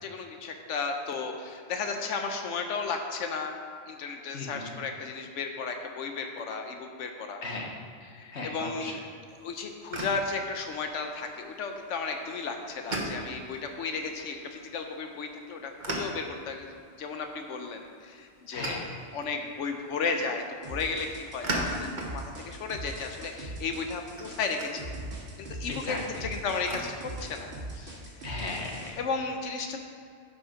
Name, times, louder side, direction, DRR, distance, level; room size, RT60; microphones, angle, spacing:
voice 1, 0.0-3.6 3.9-7.4 8.1-9.0 9.4-18.9 19.1-25.0 25.5-28.0 29.0-29.8, left 4 dB, 90° left, 4 dB, 1.1 m, -34 dB
voice 2, 4.3-4.7 7.4-7.8 8.3-9.0 18.5-18.9 25.7-26.3 28.2-29.0, left 2 dB, 70° left, 0 dB, 1.5 m, -36 dB
sound 1, 9.3-26.8, right 1 dB, 40° right, 1.3 m, -41 dB
sound 2, 20.6-28.9, right 2 dB, 60° right, 1.9 m, -41 dB
11.0 x 5.3 x 5.0 m, 2.3 s
omnidirectional pair, 1.2 m